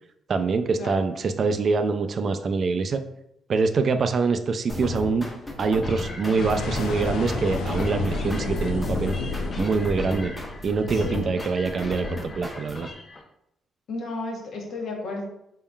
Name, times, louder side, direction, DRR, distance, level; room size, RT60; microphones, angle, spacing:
voice 1, 0.3-3.0 3.5-5.2 5.6-9.2 9.6-10.3 10.6-12.9, right 4 dB, 50° right, 8 dB, 0.4 m, -24 dB
sound 1, 4.7-12.9, left 3 dB, 20° left, 1.0 m, -35 dB
sound 2, 5.8-13.2, left 2 dB, 40° left, 0.7 m, -43 dB
sound 3, 6.4-11.5, left 3 dB, 85° left, 0.5 m, -30 dB
voice 2, 10.9-11.3 13.9-15.2, left 2 dB, 70° left, 0 dB, 1.1 m, -33 dB
4.1 x 3.7 x 2.3 m, 0.78 s
cardioid pair, 90°, 0 cm